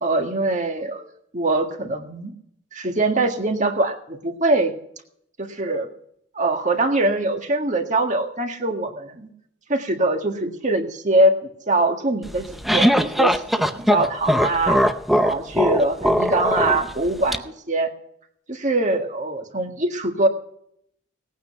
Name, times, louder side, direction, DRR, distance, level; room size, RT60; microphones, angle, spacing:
voice 1, 0.0-1.1 1.3-2.3 2.7-4.7 5.4-5.9 6.4-9.3 9.7-13.4 13.7-14.8 15.2-17.9 18.5-20.3, right 2 dB, 35° right, 5 dB, 1.7 m, -23 dB
sound 1, 12.3-17.4, equal, ahead, 0.6 m, -20 dB
19.0 x 9.3 x 5.8 m, 0.70 s
head